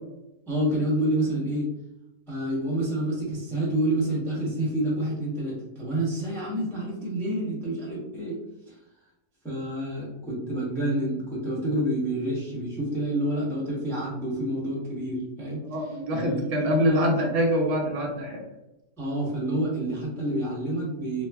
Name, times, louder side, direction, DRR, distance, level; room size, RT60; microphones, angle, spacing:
voice 1, 0.5-1.6 2.3-8.4 8.7-8.8 9.4-16.4 16.7-17.0 19.0-21.3, right 1 dB, 5° left, -7 dB, 0.4 m, -28 dB
voice 2, 15.6-18.4, equal, 60° right, -1 dB, 0.9 m, -25 dB
3.2 x 2.2 x 2.2 m, 0.93 s
omnidirectional pair, 1.6 m